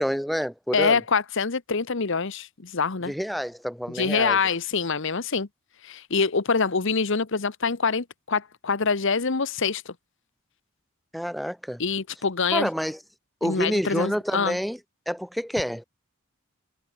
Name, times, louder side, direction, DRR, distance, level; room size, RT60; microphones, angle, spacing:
voice 1, 0.0-1.0 3.1-4.4 11.1-11.8 12.5-13.0 13.4-14.8 15.1-15.8, equal, ahead, 0.5 m, -28 dB
voice 2, 0.7-3.1 3.9-5.5 5.8-9.9 11.8-12.7 13.4-14.6, left 5 dB, 60° left, 1.1 m, -25 dB
head